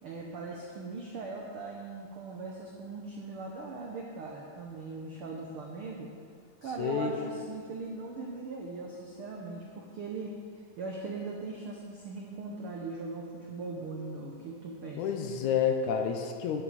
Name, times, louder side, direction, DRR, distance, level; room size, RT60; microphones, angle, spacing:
voice 1, 0.0-6.1 6.6-15.1, right 3 dB, 80° right, -1 dB, 1.2 m, -40 dB
voice 2, 6.8-7.1 15.0-16.6, left 7 dB, 75° left, 4 dB, 2.0 m, -29 dB
12.0 x 9.7 x 4.1 m, 2.2 s
omnidirectional pair, 3.8 m